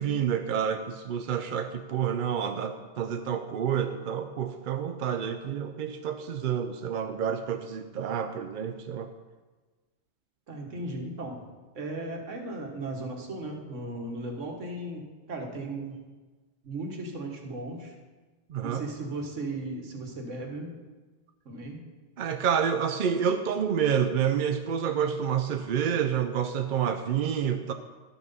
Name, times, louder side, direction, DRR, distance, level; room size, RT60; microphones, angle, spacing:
voice 1, 0.0-9.1 18.5-18.8 22.2-27.7, right 8 dB, 60° right, 7 dB, 0.5 m, -28 dB
voice 2, 10.5-11.5 11.7-16.0 16.6-17.9 18.6-20.7 21.4-21.8, right 2 dB, 85° right, 2 dB, 1.7 m, -36 dB
12.0 x 6.1 x 5.3 m, 1.3 s
omnidirectional pair, 1.3 m